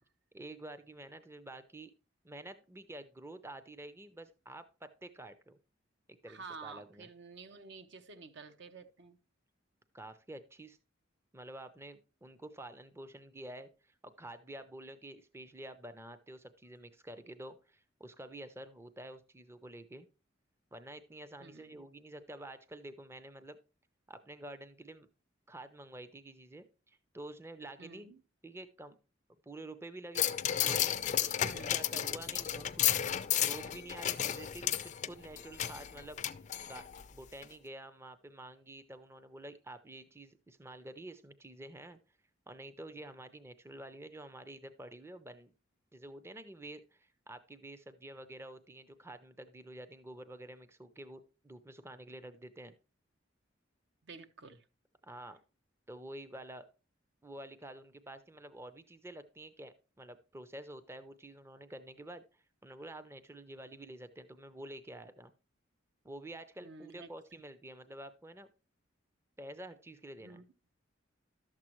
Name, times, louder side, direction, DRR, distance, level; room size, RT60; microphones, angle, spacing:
voice 1, 0.3-1.9 2.2-5.6 6.1-7.1 9.9-10.8 11.3-20.1 20.7-23.6 24.1-25.1 25.5-28.2 28.4-29.0 29.4-30.3 30.6-31.0 31.5-33.0 33.4-36.2 36.7-42.0 42.5-45.5 45.9-52.7 55.0-55.4 55.9-56.7 57.2-65.3 66.0-68.5 69.4-70.4, right 1 dB, 15° right, 0.5 m, -49 dB
voice 2, 6.3-9.2 21.4-21.9 27.8-28.2 31.4-31.8 54.0-54.6 66.6-67.4 70.2-70.5, right 4 dB, 65° right, 0.8 m, -50 dB
sound 1, 30.2-37.0 37.4-37.5, left 10 dB, 40° left, 0.4 m, -33 dB
12.0 x 7.4 x 3.0 m
head